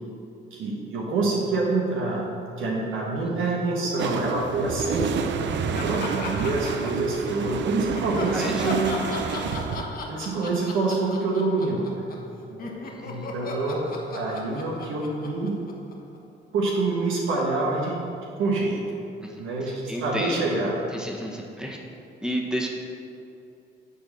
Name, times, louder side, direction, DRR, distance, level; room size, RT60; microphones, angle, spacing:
voice 1, 0.5-2.3 2.6-5.3 5.8-8.9 10.1-11.9 12.5-12.7 13.0-15.6 16.5-18.0 18.4-19.0 19.4-20.8, right 3 dB, 85° right, -3 dB, 1.3 m, -26 dB
sound 1, 4.0-9.8, right 6 dB, 65° right, 0.6 m, -29 dB
Laughter, 5.7-7.5 7.9-12.3 12.6-16.2, left 2 dB, 45° left, 1.3 m, -36 dB
voice 2, 8.3-9.0 12.8-13.3 19.2-20.6 20.9-21.8 22.2-22.7, equal, 5° right, 0 dB, 1.3 m, -32 dB
9.0 x 4.2 x 6.6 m, 2.7 s
cardioid pair, 90°, 20 cm